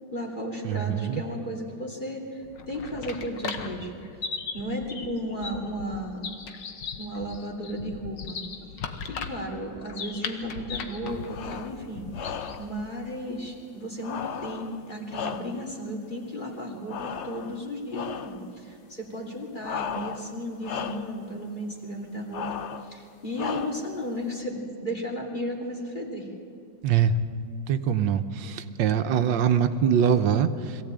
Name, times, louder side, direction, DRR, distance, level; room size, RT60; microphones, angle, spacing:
voice 1, 0.1-3.9 4.5-6.3 7.0-8.4 9.0-12.1 12.6-22.5 22.8-26.3, equal, 25° left, -1 dB, 3.0 m, -34 dB
voice 2, 0.6-1.2 26.8-27.2 27.7-30.8, right 8 dB, 85° right, 9 dB, 1.5 m, -23 dB
sound 1, 2.4-12.7, left 5 dB, 75° left, 1.9 m, -37 dB
sound 2, 11.2-11.8 12.1-12.8 14.0-15.8 16.9-17.6 17.9-18.4 19.6-20.4 20.6-21.2 22.3-22.9 23.4-24.0, left 7 dB, 55° left, 0.8 m, -35 dB
22.5 x 16.0 x 8.9 m, 2.6 s
omnidirectional pair, 2.0 m